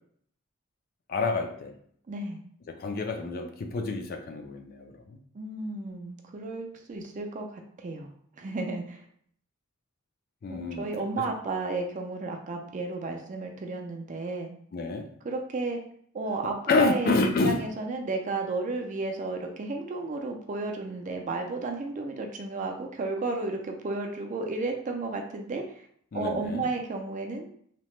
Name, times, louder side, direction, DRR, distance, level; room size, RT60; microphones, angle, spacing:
voice 1, 1.1-1.7 2.7-5.2 10.4-10.9 14.7-15.1 16.7-17.6 26.1-26.7, left 3 dB, 45° left, 5 dB, 0.4 m, -28 dB
voice 2, 2.1-2.4 5.3-8.1 8.4-9.0 10.5-14.5 15.2-15.8 16.1-17.2 17.4-25.8 26.1-27.5, right 3 dB, 35° right, 3 dB, 0.4 m, -33 dB
2.8 x 2.1 x 3.1 m, 0.62 s
head